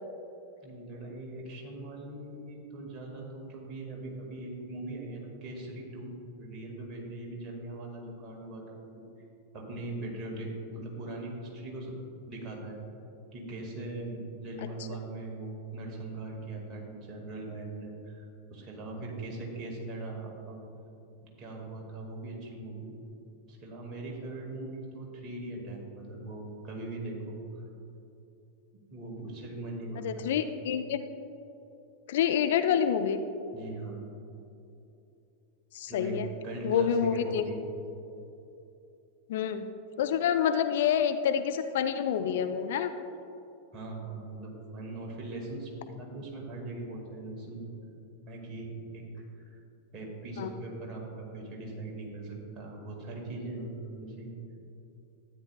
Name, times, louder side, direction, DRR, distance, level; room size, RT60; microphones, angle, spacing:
voice 1, 0.6-6.1 6.4-8.8 9.5-11.9 12.3-12.8 13.3-20.6 21.4-22.9 23.5-27.6 28.9-30.3 33.5-34.0 35.9-36.2 36.4-37.6 43.7-47.6 48.3-49.6 49.9-54.3, right 2 dB, 30° right, -1 dB, 1.9 m, -40 dB
voice 2, 30.0-31.0 32.1-33.2 35.7-36.3 36.6-37.4 39.3-39.7 40.0-42.9 50.4-50.5, left 8 dB, 55° left, 9 dB, 0.4 m, -27 dB
12.5 x 9.2 x 2.3 m, 2.8 s
figure-of-eight pair, 90°, 0 cm